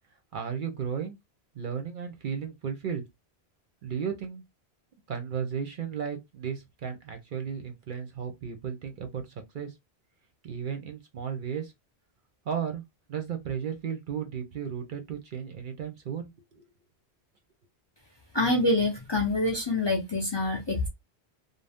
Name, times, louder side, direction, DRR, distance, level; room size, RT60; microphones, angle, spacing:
voice 1, 0.3-1.2 1.5-3.0 3.8-4.4 5.1-9.2 9.5-9.7 10.4-11.7 12.5-12.8 13.1-16.7, right 7 dB, 60° right, 0.7 m, -34 dB
voice 2, 18.3-20.9, left 2 dB, 30° left, 0.6 m, -26 dB
2.5 x 2.0 x 3.3 m
omnidirectional pair, 1.1 m